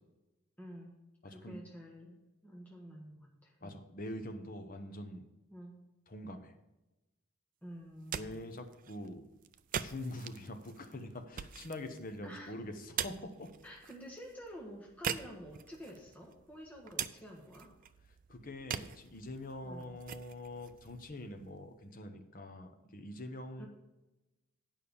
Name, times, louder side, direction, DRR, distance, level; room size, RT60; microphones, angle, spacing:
voice 1, 0.6-1.0 1.2-3.7 5.5-5.8 7.6-8.3 12.2-12.5 13.6-17.7 19.6-20.0 23.6-23.7, equal, 5° left, -2 dB, 1.3 m, -49 dB
voice 2, 1.2-1.6 3.6-5.3 6.1-6.5 8.1-9.3 9.7-13.5 18.3-23.7, left 1 dB, 40° left, 6 dB, 0.8 m, -44 dB
sound 1, 7.8-21.8, right 8 dB, 35° right, 0.3 m, -44 dB
8.7 x 5.5 x 6.9 m, 1.0 s
head